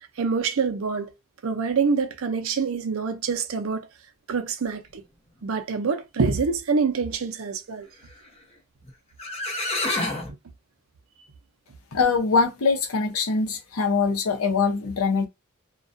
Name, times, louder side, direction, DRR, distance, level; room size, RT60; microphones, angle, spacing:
voice 1, 0.2-1.1 1.4-3.9 4.3-5.0 5.4-7.9, right 5 dB, 70° right, 0.5 m, -26 dB
sound 1, 8.9-9.0 9.2-10.3, left 2 dB, 30° left, 0.9 m, -27 dB
voice 2, 11.9-15.3, left 4 dB, 85° left, 0.7 m, -23 dB
2.3 x 2.2 x 2.5 m
head